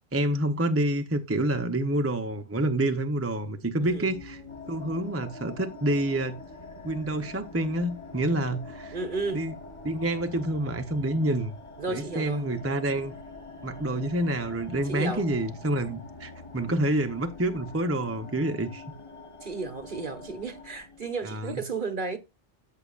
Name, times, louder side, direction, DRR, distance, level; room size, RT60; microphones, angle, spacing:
voice 1, 0.1-4.4 4.7-6.4 6.8-9.0 9.3-9.5 9.8-11.6 11.9-13.2 13.6-18.8 21.2-21.6, right 1 dB, 15° right, 0.6 m, -28 dB
sound 1, 3.8-21.2, left 3 dB, 25° left, 1.2 m, -47 dB
sound 2, 4.5-20.8, left 2 dB, 10° left, 2.2 m, -48 dB
voice 2, 8.9-9.5 11.8-12.5 14.8-15.3 19.4-22.2, right 4 dB, 45° right, 1.4 m, -33 dB
14.0 x 6.6 x 2.5 m
omnidirectional pair, 1.2 m